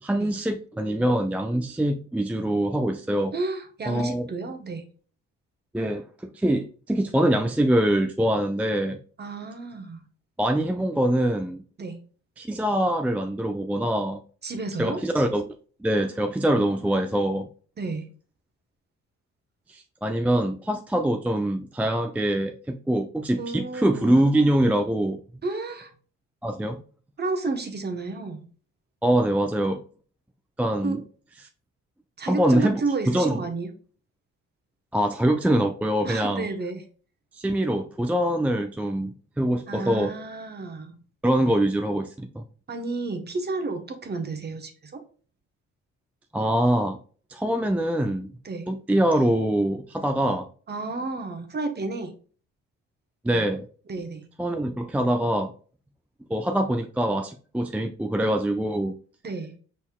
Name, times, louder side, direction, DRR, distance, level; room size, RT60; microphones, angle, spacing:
voice 1, 0.0-3.3 3.9-4.2 5.7-9.0 10.4-11.6 12.4-14.2 14.8-15.4 15.8-17.5 19.7-25.4 26.4-26.8 29.0-29.8 30.6-31.0 32.2-32.8 33.1-33.4 34.9-36.5 37.3-40.1 41.2-42.4 46.3-47.0 47.3-48.3 48.7-50.5 53.2-53.6 54.4-55.5 56.3-59.0, right 1 dB, 5° right, 0.4 m, -24 dB
voice 2, 3.3-4.9 9.2-10.0 11.8-12.0 14.4-15.0 17.8-18.1 23.4-24.3 25.4-25.9 27.2-28.4 30.8-31.0 32.2-33.7 36.0-36.8 39.7-41.0 42.7-45.0 48.4-48.7 50.7-52.1 53.3-53.4 53.9-54.2 59.2-59.5, right 3 dB, 35° right, 1.1 m, -31 dB
5.5 x 4.1 x 2.3 m
cardioid pair, 90°, 30 cm